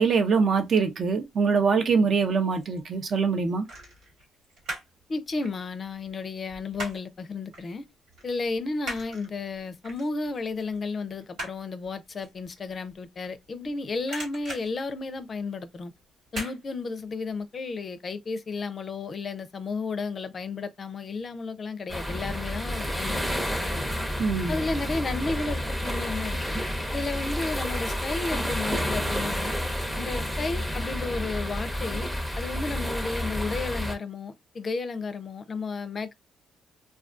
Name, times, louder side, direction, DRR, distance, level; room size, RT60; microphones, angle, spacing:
voice 1, 0.0-3.7 24.2-24.6, right 5 dB, 50° right, 0.6 m, -23 dB
sound 1, 2.5-2.8 3.6-5.0 5.3-7.2 7.5-7.7 8.1-13.7 14.0-15.6 16.3-16.6 17.0-17.1, right 1 dB, 75° right, 1.5 m, -40 dB
voice 2, 5.1-7.8 8.2-15.9 16.3-23.8 24.5-26.5 26.9-29.5 30.0-32.1 32.4-36.1, left 3 dB, 40° left, 0.4 m, -33 dB
sound 2, 21.9-33.9, equal, 5° right, 0.6 m, -30 dB
2.3 x 2.2 x 2.5 m
cardioid pair, 90°, 0 cm